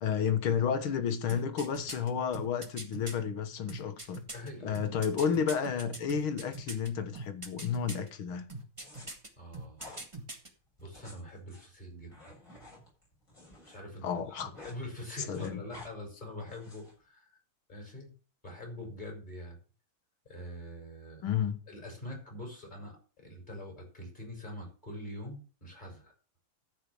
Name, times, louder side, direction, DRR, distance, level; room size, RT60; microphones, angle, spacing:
voice 1, 0.0-4.2 4.6-8.5 14.0-14.5 15.2-15.6 21.2-21.6, left 7 dB, 85° left, 2.2 m, -31 dB
sound 1, 1.3-3.1 3.7-6.9 7.1-8.1 8.5-9.3 9.5-10.5 10.8-10.9, right 2 dB, 15° right, 1.9 m, -42 dB
voice 2, 4.3-4.8 9.4-10.0 10.8-12.3 13.6-17.4 17.7-18.1 18.4-19.6 20.3-21.3 21.7-26.1, left 1 dB, 20° left, 5.2 m, -44 dB
sound 2, 8.8-9.1 9.7-10.0 10.8-13.8 14.1-14.8 15.1-15.9 16.5-16.9, left 2 dB, 40° left, 8.0 m, -51 dB
14.0 x 5.2 x 7.0 m
omnidirectional pair, 2.3 m